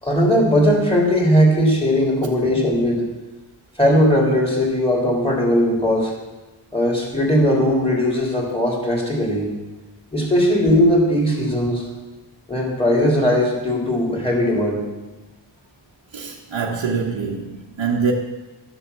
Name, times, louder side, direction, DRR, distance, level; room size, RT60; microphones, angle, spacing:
voice 1, 0.0-3.0 3.8-6.1 6.7-9.5 10.1-11.8 12.5-14.8, equal, 10° left, 3.7 m, -18 dB
voice 2, 16.1-18.1, right 5 dB, 75° right, 1.4 m, -24 dB
13.0 x 7.8 x 6.9 m
wide cardioid pair, 130°, 46 cm